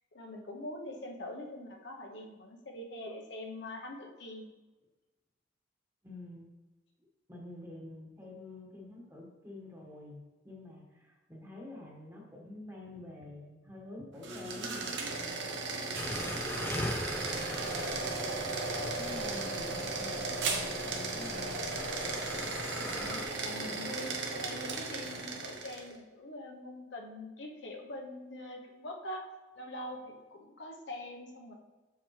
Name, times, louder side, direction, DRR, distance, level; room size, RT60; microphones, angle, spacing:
voice 1, 0.1-4.5 22.7-24.1 24.4-29.2 29.6-31.5, left 1 dB, 65° left, 1 dB, 0.9 m, -44 dB
voice 2, 6.0-6.5 7.3-16.5 17.5-17.9 18.7-21.6, left 2 dB, 15° right, -3 dB, 1.5 m, -48 dB
sound 1, 14.1-25.9, right 3 dB, 70° right, 1.0 m, -36 dB
sound 2, 15.9-23.2, left 1 dB, 10° left, 0.6 m, -41 dB
7.3 x 5.8 x 3.2 m, 1.2 s
head